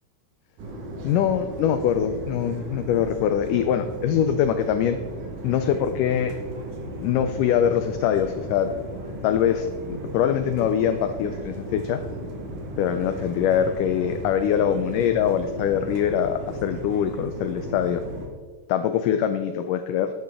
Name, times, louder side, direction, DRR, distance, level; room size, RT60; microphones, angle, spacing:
sound 1, 0.6-18.3, right 1 dB, 60° right, 2.9 m, -35 dB
voice 1, 1.0-5.0 5.4-6.4 7.0-8.7 9.2-9.7 10.1-12.0 12.8-18.0 18.7-20.1, left 9 dB, 90° left, 9 dB, 1.8 m, -23 dB
12.0 x 10.5 x 3.6 m, 1.5 s
omnidirectional pair, 4.4 m